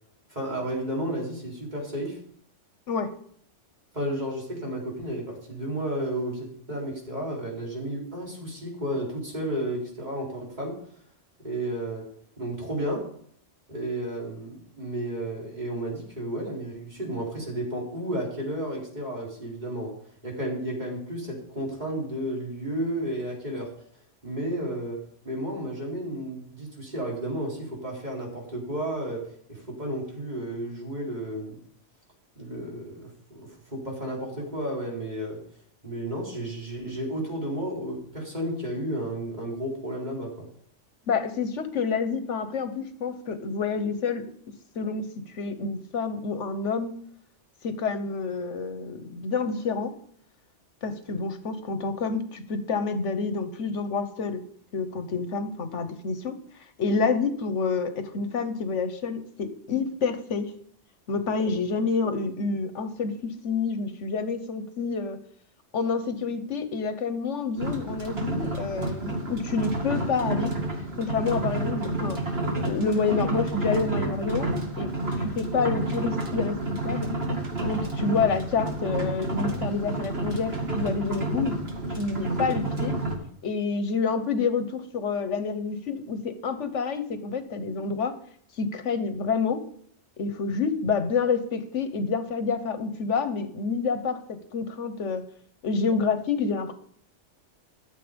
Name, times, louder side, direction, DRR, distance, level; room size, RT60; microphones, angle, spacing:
voice 1, 0.3-2.2 3.9-10.8 11.4-12.1 12.4-13.1 13.7-19.9 20.2-23.7 24.2-31.6 32.4-35.4 35.8-40.5, right 1 dB, 35° right, -3 dB, 4.2 m, -32 dB
voice 2, 41.1-44.2 44.7-46.9 47.6-49.9 50.8-54.4 54.7-56.4 56.8-60.5 61.1-65.2 65.7-70.5 71.0-72.2 72.6-74.5 74.8-77.1 77.6-81.6 82.0-82.9 83.4-88.1 88.6-89.6 90.2-95.2 95.6-96.7, left 5 dB, 85° left, 10 dB, 1.4 m, -28 dB
sound 1, 67.6-83.2, right 2 dB, 60° right, 2.3 m, -30 dB
13.5 x 7.5 x 5.2 m, 0.63 s
omnidirectional pair, 1.2 m